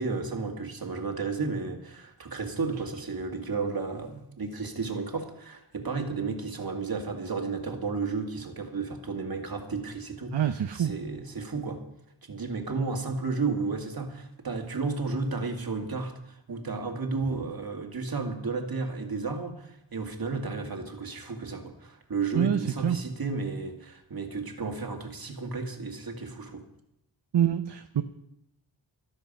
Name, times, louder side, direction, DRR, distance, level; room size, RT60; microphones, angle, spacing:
voice 1, 0.0-11.8 12.3-26.6, right 4 dB, 50° right, 3 dB, 2.1 m, -33 dB
voice 2, 10.3-10.9 22.3-23.0 27.3-28.0, right 9 dB, 65° right, 8 dB, 0.8 m, -26 dB
13.5 x 13.0 x 5.4 m, 0.80 s
wide cardioid pair, 120°, 44 cm